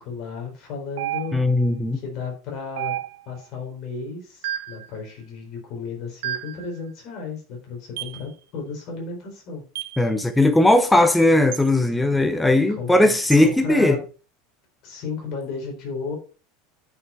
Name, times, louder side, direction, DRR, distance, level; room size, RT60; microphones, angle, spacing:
voice 1, 0.0-1.4 1.9-3.0 3.3-9.6 12.7-14.0 14.8-16.2, left 5 dB, 35° left, 4.1 m, -34 dB
sound 1, 1.0-1.7 2.8-3.4 4.4-4.9 6.2-6.7 8.0-8.2 9.8-10.0 11.5-11.7 13.3-13.5, right 13 dB, 70° right, 0.6 m, -31 dB
voice 2, 1.3-2.0 10.0-14.0, left 1 dB, 5° left, 0.6 m, -18 dB
9.7 x 6.1 x 4.3 m
supercardioid pair, 175°, 0 cm